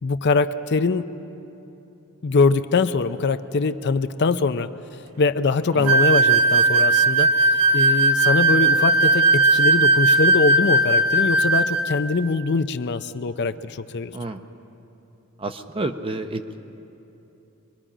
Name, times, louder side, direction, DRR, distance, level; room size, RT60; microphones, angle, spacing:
voice 1, 0.0-1.1 2.2-4.7 5.2-7.3 7.7-14.1, left 4 dB, 50° left, 11 dB, 0.5 m, -22 dB
sound 1, 5.9-11.9, right 2 dB, 75° right, 0.6 m, -18 dB
voice 2, 15.4-16.6, right 2 dB, 25° right, 8 dB, 0.7 m, -30 dB
24.0 x 22.5 x 5.0 m, 3.0 s
head